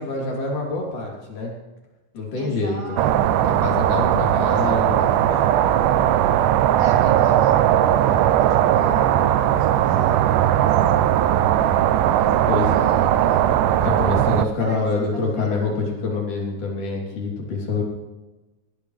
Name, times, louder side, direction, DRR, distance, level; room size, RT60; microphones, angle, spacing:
voice 1, 0.0-1.5 2.1-2.8 3.4-5.0 12.5-12.9 13.8-17.8, left 3 dB, 75° left, -2 dB, 4.8 m, -26 dB
voice 2, 2.4-3.6 4.5-5.4 6.8-10.7 12.2-13.5 14.6-15.6, right 2 dB, 55° right, -1 dB, 4.2 m, -37 dB
sound 1, 3.0-14.5, right 11 dB, 90° right, 2.2 m, -18 dB
19.0 x 16.5 x 3.4 m, 1.1 s
omnidirectional pair, 3.6 m